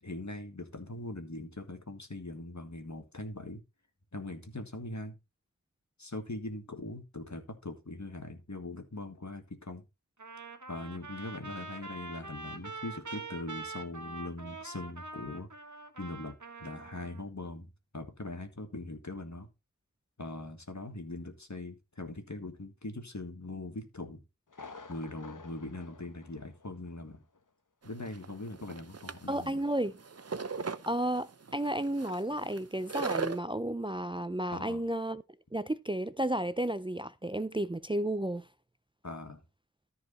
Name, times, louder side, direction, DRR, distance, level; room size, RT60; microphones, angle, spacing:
voice 1, 0.0-3.6 4.1-5.2 6.0-9.8 10.7-15.5 16.0-19.5 20.2-24.2 24.9-27.2 27.8-29.6 34.5-34.8 39.0-39.4, left 2 dB, 65° left, 2.0 m, -41 dB
Trumpet, 10.2-17.2, right 3 dB, 70° right, 1.4 m, -44 dB
Thunder, 24.5-27.1 27.3-27.4 28.0-28.1, left 4 dB, 85° left, 1.1 m, -50 dB
sound 1, 27.8-33.4, right 4 dB, 50° right, 0.7 m, -38 dB
voice 2, 29.3-30.0 30.9-35.2 35.5-38.5, right 1 dB, 15° right, 0.5 m, -32 dB
13.5 x 4.8 x 4.1 m
wide cardioid pair, 40°, 31 cm